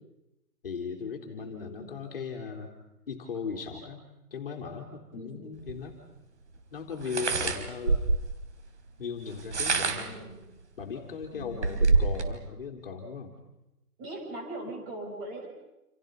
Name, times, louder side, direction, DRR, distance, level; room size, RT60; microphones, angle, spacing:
voice 1, 0.6-2.7 3.1-4.0 4.3-6.0 6.7-8.1 9.0-10.2 10.8-13.3, left 5 dB, 35° left, 1 dB, 4.0 m, -38 dB
voice 2, 1.3-2.0 5.1-5.4 9.7-10.4 11.3-11.9 14.0-15.5, right 1 dB, 15° right, -1 dB, 6.5 m, -41 dB
sound 1, 5.7-5.8 7.0-8.4 9.3-10.2 10.8-10.9 11.2-12.3, right 3 dB, 45° right, 3.9 m, -26 dB
29.5 x 29.0 x 5.4 m, 0.94 s
hypercardioid pair, 175°, 47 cm